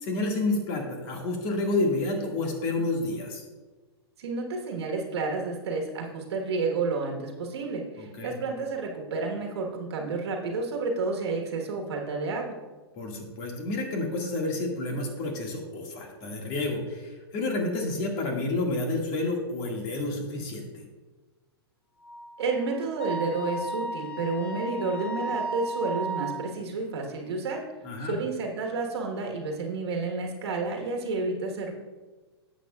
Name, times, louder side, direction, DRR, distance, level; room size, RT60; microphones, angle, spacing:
voice 1, 0.0-3.4 8.0-8.4 12.9-20.8 27.8-28.2, left 2 dB, 40° left, 1 dB, 1.9 m, -30 dB
voice 2, 4.2-12.5 22.4-27.6 28.0-31.7, right 3 dB, 75° right, 1 dB, 1.4 m, -30 dB
Wind instrument woodwind instrument, 22.0-26.4, right 1 dB, 5° left, 2.3 m, -35 dB
11.0 x 7.7 x 2.4 m, 1.3 s
hypercardioid pair, 125°, 14 cm